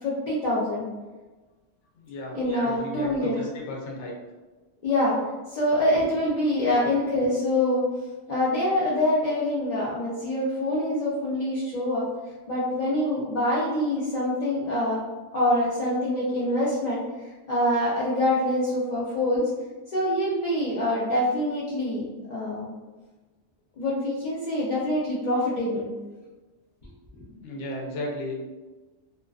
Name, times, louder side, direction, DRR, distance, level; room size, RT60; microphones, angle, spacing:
voice 1, 0.0-0.9 2.3-3.4 4.8-5.2 5.5-7.8 8.3-12.1 12.5-15.0 15.3-19.4 19.9-22.7 23.8-25.8, left 1 dB, 55° left, -8 dB, 0.4 m, -25 dB
voice 2, 2.0-2.4 2.6-4.1 27.3-28.4, left 1 dB, 80° left, -2 dB, 0.9 m, -34 dB
2.4 x 2.2 x 2.3 m, 1.2 s
omnidirectional pair, 1.2 m